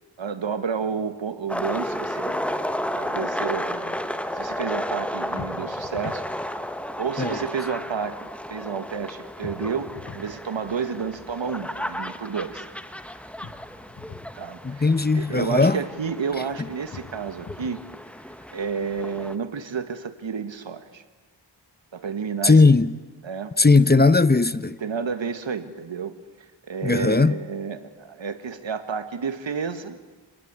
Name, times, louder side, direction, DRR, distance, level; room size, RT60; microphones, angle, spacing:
voice 1, 0.2-2.4 3.0-4.0 4.3-6.7 7.0-12.7 14.3-14.8 15.1-17.8 18.5-21.0 21.9-22.7 23.2-23.5 24.8-26.1 26.7-30.0, right 6 dB, 85° right, 1.8 m, -31 dB
sound 1, 1.5-19.4, equal, 5° left, 1.4 m, -33 dB
sound 2, 5.4-6.3 9.4-10.3 13.4-14.3 16.9-17.8, left 5 dB, 50° left, 1.8 m, -41 dB
voice 2, 14.6-15.8 22.4-22.9 23.6-24.8 26.8-27.4, left 3 dB, 20° left, 0.8 m, -18 dB
27.5 x 19.0 x 9.8 m
wide cardioid pair, 75°, 44 cm